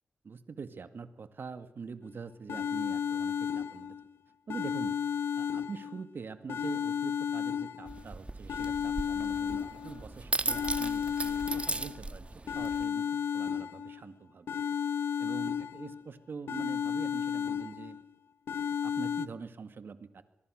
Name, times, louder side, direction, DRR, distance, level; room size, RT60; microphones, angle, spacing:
voice 1, 0.2-4.0 4.5-5.0 5.4-14.6 15.2-18.0 18.8-20.2, right 5 dB, 60° right, 10 dB, 2.1 m, -44 dB
sound 1, 2.1-2.2 2.5-4.1 4.5-6.1 6.5-8.1 8.5-10.1 10.5-12.1 12.5-14.1 14.5-16.1 16.5-18.1 18.5-19.3, left 8 dB, 75° left, 0.9 m, -33 dB
sound 2, 7.9-12.8, right 2 dB, 30° right, 1.6 m, -37 dB
24.5 x 23.0 x 6.5 m, 0.84 s
supercardioid pair, 45°, 4 cm